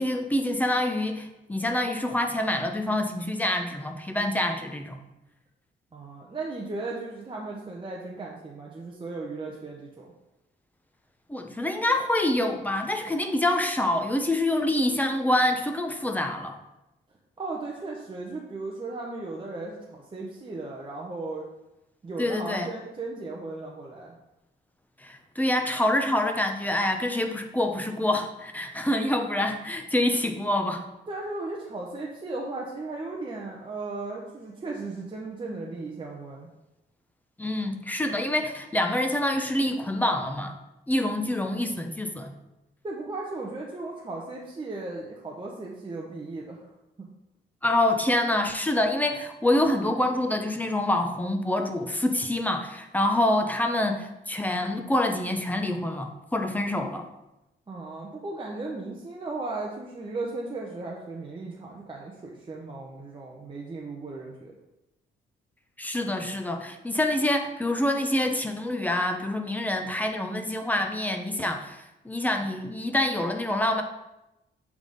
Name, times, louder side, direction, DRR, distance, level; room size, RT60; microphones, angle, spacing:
voice 1, 0.0-5.0 11.3-16.6 22.2-22.7 25.0-30.8 37.4-40.6 40.9-42.3 47.6-57.0 65.8-73.8, left 1 dB, 10° left, 4 dB, 0.7 m, -26 dB
voice 2, 5.9-10.1 17.4-21.4 22.0-24.1 31.1-36.5 42.8-46.6 57.7-64.5, right 3 dB, 25° right, -2 dB, 0.8 m, -36 dB
8.0 x 3.6 x 3.9 m, 0.95 s
cardioid pair, 105°, 20 cm